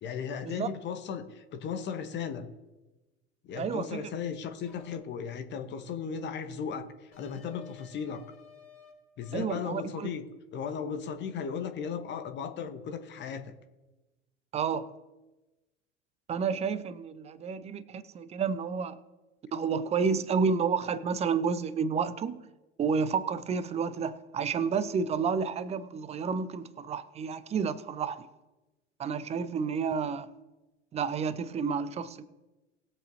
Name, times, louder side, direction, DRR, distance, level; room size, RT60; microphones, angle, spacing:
voice 1, 0.0-2.5 3.4-8.2 9.2-10.2 10.5-13.5, left 7 dB, 30° left, 1.1 m, -36 dB
voice 2, 3.6-4.1 9.3-10.1 14.5-14.9 16.3-19.0 19.5-22.4 22.8-28.3 29.0-30.3 30.9-32.2, right 6 dB, 20° right, 0.6 m, -30 dB
sound 1, 4.6-5.0 7.1-8.9 9.2-9.5, left 6 dB, 55° left, 3.5 m, -54 dB
20.0 x 7.5 x 2.7 m
figure-of-eight pair, 80°, 36 cm